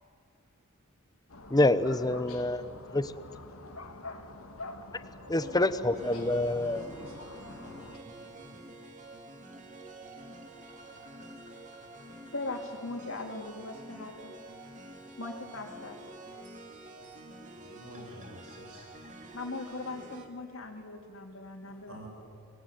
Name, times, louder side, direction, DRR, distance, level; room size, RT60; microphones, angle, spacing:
sound 1, 1.3-8.0, left 2 dB, 85° left, 2.2 m, -46 dB
voice 1, 1.5-2.6 2.9-3.0 5.3-6.8, left 2 dB, 20° left, 13 dB, 0.9 m, -26 dB
voice 2, 5.3-7.1 17.5-18.8 21.8-22.1, right 1 dB, 80° right, -1 dB, 7.3 m, -45 dB
sound 2, 5.9-20.3, right 2 dB, 35° right, 2.5 m, -48 dB
voice 3, 12.3-14.3 15.2-16.0 19.3-22.0, left 2 dB, 70° left, 3 dB, 3.6 m, -39 dB
25.5 x 20.0 x 9.5 m, 2.5 s
head